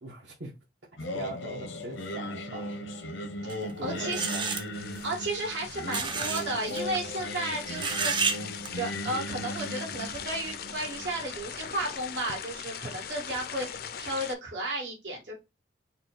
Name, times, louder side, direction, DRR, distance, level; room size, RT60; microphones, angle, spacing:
voice 1, 0.0-0.5 1.1-2.7 3.6-4.4 12.7-13.0, right 2 dB, 65° right, 1.0 m, -41 dB
Singing, 1.0-12.1, left 1 dB, 85° left, 0.7 m, -38 dB
sound 1, 3.5-3.6 4.1-4.6 5.9-6.4 6.7-6.8 7.8-8.4 8.7-8.8, right 5 dB, 25° right, 0.4 m, -29 dB
voice 2, 3.8-4.2 5.0-8.1 8.7-13.7 14.0-15.3, right 2 dB, 85° right, 2.0 m, -33 dB
sound 2, 4.7-14.3, left 8 dB, 50° left, 0.4 m, -41 dB
4.3 x 2.3 x 3.8 m
head